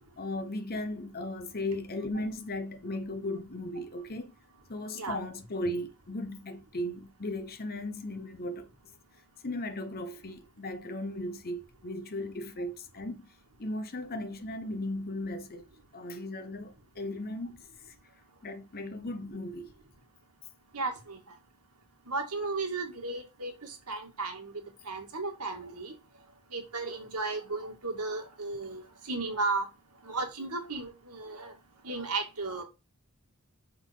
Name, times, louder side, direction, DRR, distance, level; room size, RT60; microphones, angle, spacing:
voice 1, 0.2-4.3 4.7-8.7 9.4-13.3 13.6-15.6 15.9-17.6 18.4-19.7, left 1 dB, 45° left, 1.0 m, -36 dB
voice 2, 20.7-21.2 22.1-24.5 24.8-26.0 26.5-29.7 30.0-31.5 31.8-32.6, right 3 dB, 85° right, 1.9 m, -34 dB
6.2 x 3.7 x 4.9 m
head